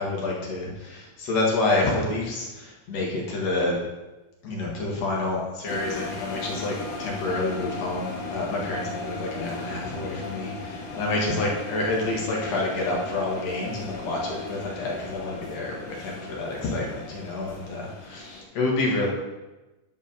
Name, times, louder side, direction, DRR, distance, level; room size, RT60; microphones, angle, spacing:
voice 1, 0.0-3.8 4.4-19.1, left 2 dB, 60° left, -2 dB, 2.8 m, -28 dB
sound 1, 5.7-18.4, left 3 dB, 90° left, 2.9 m, -36 dB
10.0 x 5.4 x 5.1 m, 1.1 s
omnidirectional pair, 3.5 m